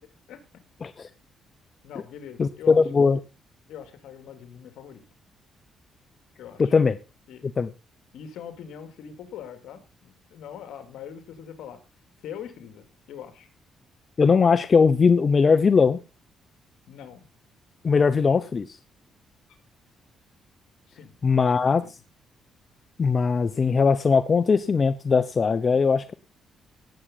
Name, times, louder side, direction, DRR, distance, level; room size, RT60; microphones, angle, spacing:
voice 1, 1.8-2.9 3.7-5.1 6.4-6.7 7.3-7.5 8.1-11.8 12.2-13.5 16.9-17.3 20.9-21.9, left 8 dB, 80° left, 9 dB, 2.4 m, -42 dB
voice 2, 2.4-3.2 6.6-7.0 7.6-7.7 14.2-16.0 17.8-18.7 21.2-21.8 23.0-26.1, left 5 dB, 40° left, 13 dB, 0.8 m, -20 dB
18.5 x 7.5 x 3.8 m, 0.27 s
cardioid pair, 90°, 0 cm